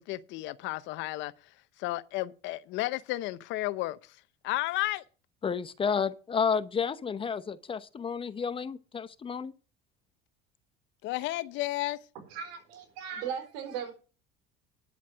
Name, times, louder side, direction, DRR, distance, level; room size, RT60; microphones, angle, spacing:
voice 1, 0.0-1.3 1.8-4.2 4.4-5.0 11.0-12.0, left 17 dB, 65° left, 0.8 m, -32 dB
voice 2, 5.4-9.5, left 6 dB, 25° left, 0.8 m, -31 dB
voice 3, 12.3-13.9, right 7 dB, 80° right, 4.1 m, -37 dB
10.5 x 7.3 x 6.2 m
supercardioid pair, 110°, 21 cm